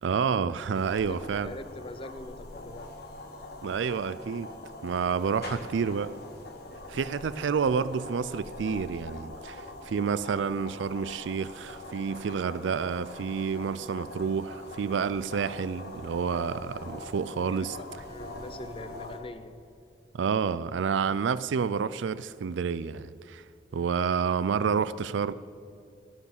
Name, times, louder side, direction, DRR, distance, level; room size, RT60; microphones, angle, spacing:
voice 1, 0.0-1.5 3.6-4.5 4.8-6.1 6.9-17.7 20.1-23.4 23.7-25.3, right 6 dB, 85° right, 0.4 m, -29 dB
sound 1, 0.7-19.2, left 2 dB, 60° left, 1.5 m, -43 dB
voice 2, 0.7-2.9 17.3-19.6, left 2 dB, 30° left, 0.6 m, -44 dB
sound 2, 11.6-17.1, right 1 dB, 65° right, 3.9 m, -59 dB
13.5 x 9.5 x 7.2 m
head